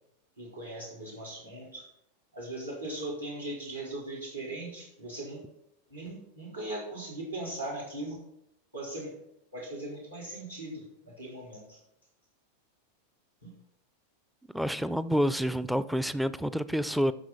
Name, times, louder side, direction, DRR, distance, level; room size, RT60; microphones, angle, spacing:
voice 1, 0.4-1.9 2.3-5.4 5.9-8.2 8.7-9.2 9.5-11.8 13.4-13.5, right 1 dB, 90° right, 4.2 m, -39 dB
voice 2, 14.5-17.1, equal, ahead, 0.4 m, -28 dB
13.0 x 6.1 x 4.2 m
figure-of-eight pair, 90°, 0 cm